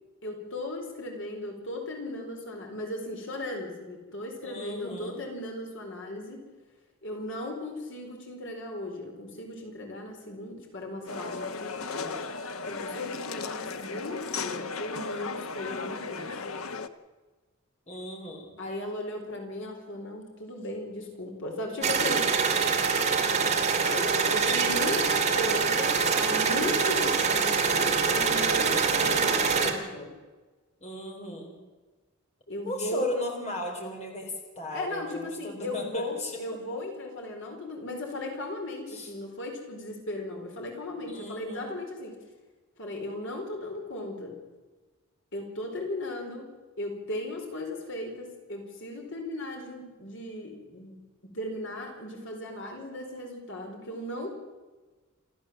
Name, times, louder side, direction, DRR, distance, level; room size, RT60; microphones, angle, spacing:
voice 1, 0.2-6.4 7.0-12.2 12.7-16.3 18.6-22.3 23.9-30.1 32.5-33.1 34.7-42.1 42.8-44.4 45.3-46.4 46.8-50.9 51.2-54.3, left 1 dB, 60° left, 2 dB, 4.5 m, -36 dB
voice 2, 4.4-5.2 17.9-18.5 30.8-31.6 32.7-36.4 38.9-39.1 41.1-41.7, left 1 dB, 35° left, 1 dB, 4.2 m, -36 dB
sound 1, 11.1-16.9, left 4 dB, 85° left, 1.2 m, -36 dB
sound 2, 21.8-29.7, right 5 dB, 35° right, 2.8 m, -25 dB
28.5 x 13.5 x 7.6 m, 1.3 s
head